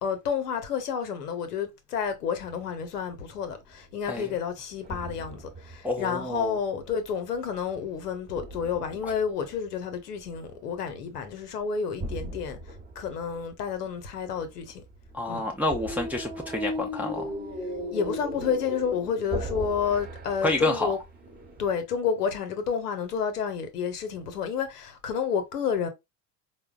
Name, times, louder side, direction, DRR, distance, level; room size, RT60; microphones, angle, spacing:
voice 1, 0.0-12.6 13.0-14.8 15.3-15.5 17.9-21.0 21.6-25.9, left 7 dB, 80° left, 0.8 m, -30 dB
sound 1, 2.4-2.8 3.2-4.4 4.8-7.1 7.7-9.8 10.2-10.9 11.2-11.6 12.0-21.8, equal, 20° right, 0.9 m, -38 dB
voice 2, 5.8-6.6 9.0-9.1 15.1-17.3 20.4-20.9, left 1 dB, 5° right, 0.3 m, -29 dB
4.3 x 2.1 x 2.3 m
figure-of-eight pair, 65°, 47 cm